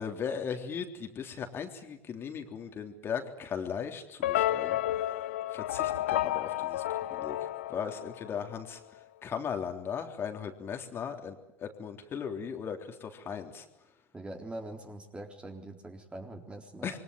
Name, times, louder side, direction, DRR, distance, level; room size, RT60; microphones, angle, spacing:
voice 1, 0.0-4.8 5.5-6.8 7.1-8.8 9.2-13.7 16.8-17.0, left 7 dB, 35° left, 5 dB, 3.5 m, -37 dB
sound 1, 4.2-8.5, left 14 dB, 75° left, 1.1 m, -31 dB
voice 2, 14.1-17.0, right 1 dB, 15° right, 4 dB, 3.9 m, -43 dB
27.0 x 23.0 x 9.3 m, 0.91 s
hypercardioid pair, 80°, 7 cm